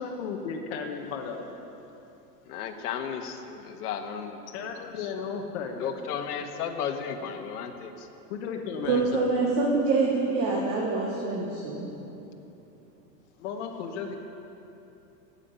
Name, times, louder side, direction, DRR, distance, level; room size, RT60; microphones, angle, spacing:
voice 1, 0.0-1.4 4.5-5.9 8.3-9.3 13.4-14.1, left 6 dB, 45° left, 2 dB, 1.1 m, -34 dB
voice 2, 2.5-3.4 3.7-4.4 4.8-4.9 5.8-7.9, left 7 dB, 70° left, 4 dB, 1.4 m, -33 dB
voice 3, 8.9-11.9, right 3 dB, 25° right, -3 dB, 1.2 m, -25 dB
14.0 x 5.7 x 8.8 m, 2.9 s
supercardioid pair, 165°, 48 cm